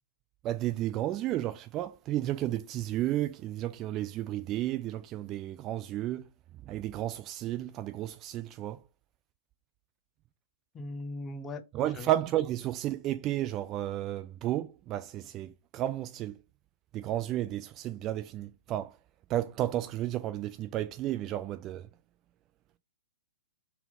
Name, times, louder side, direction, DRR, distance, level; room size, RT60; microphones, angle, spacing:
voice 1, 0.4-6.2 6.7-8.8 11.7-16.3 16.9-18.9 19.3-21.8, right 13 dB, 30° right, 0.3 m, -32 dB
voice 2, 10.7-12.1, left 2 dB, 20° left, 0.6 m, -40 dB
4.0 x 2.8 x 3.8 m
figure-of-eight pair, 115°, 0 cm